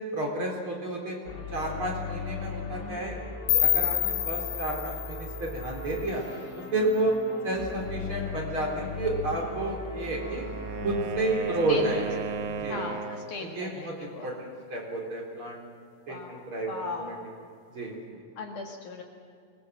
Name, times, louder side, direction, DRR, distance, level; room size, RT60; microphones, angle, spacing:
voice 1, 0.1-1.2 1.5-3.2 3.5-6.2 6.7-7.1 7.4-10.4 10.8-12.2 12.6-12.8 13.4-15.6 16.1-17.1 17.7-18.2, right 2 dB, 35° right, -1 dB, 4.5 m, -31 dB
sound 1, 1.2-12.6, left 4 dB, 35° left, 1.5 m, -38 dB
sound 2, 3.5-6.4, left 11 dB, 80° left, 3.4 m, -28 dB
Wind instrument woodwind instrument, 9.8-13.4, right 6 dB, 70° right, 2.8 m, -36 dB
voice 2, 11.7-12.0 12.7-14.3 16.1-16.4 16.7-17.2 18.4-19.0, left 3 dB, 55° left, 1 dB, 3.1 m, -37 dB
24.5 x 21.0 x 7.7 m, 2.3 s
omnidirectional pair, 4.6 m